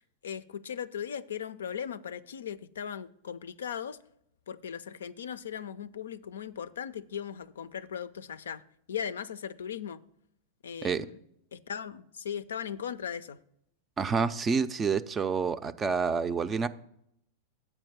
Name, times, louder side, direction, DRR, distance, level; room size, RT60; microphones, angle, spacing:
voice 1, 0.2-4.0 4.5-8.6 8.9-10.0 10.6-11.2 11.5-13.4, left 8 dB, 75° left, 0.4 m, -38 dB
voice 2, 14.0-16.7, right 5 dB, 25° right, 0.4 m, -28 dB
8.1 x 4.5 x 7.2 m
hypercardioid pair, 95°, 0 cm